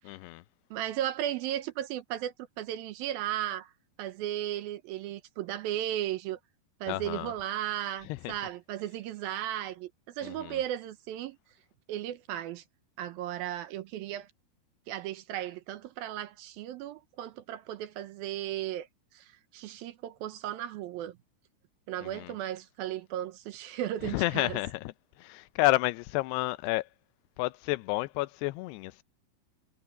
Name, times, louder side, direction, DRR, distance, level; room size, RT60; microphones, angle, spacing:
voice 1, 0.1-0.4 6.9-7.3 8.1-8.2 10.2-10.6 22.0-22.3 24.1-24.8 25.2-26.8 27.4-29.0, left 19 dB, 90° left, 2.7 m, -30 dB
voice 2, 0.7-3.7 4.0-6.4 6.8-9.9 10.2-11.4 11.9-12.6 13.0-14.3 14.9-18.9 19.1-21.2 21.9-24.6, right 12 dB, 75° right, 2.5 m, -35 dB
omnidirectional pair, 4.7 m